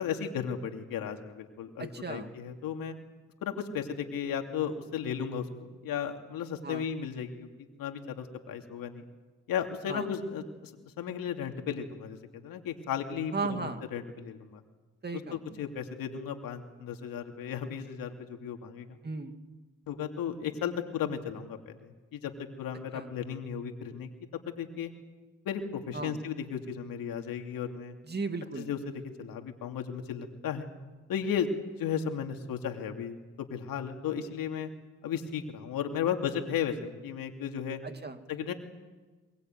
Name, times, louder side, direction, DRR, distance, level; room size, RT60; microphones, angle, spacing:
voice 1, 0.0-2.9 3.4-5.5 5.8-9.0 9.5-10.7 11.0-12.2 12.4-14.6 15.1-19.0 19.9-24.1 24.5-24.9 25.4-27.9 28.6-30.7 31.1-31.5 31.8-34.7 35.0-37.8 38.3-38.5, left 8 dB, 70° left, 4 dB, 2.9 m, -35 dB
voice 2, 1.8-2.3 6.6-6.9 9.9-10.1 13.3-13.8 15.0-15.4 19.0-19.4 22.9-23.1 25.9-26.2 28.1-28.7 37.8-38.2, right 4 dB, 30° right, 7 dB, 2.6 m, -36 dB
22.5 x 20.5 x 9.3 m, 1.3 s
supercardioid pair, 60°, 35 cm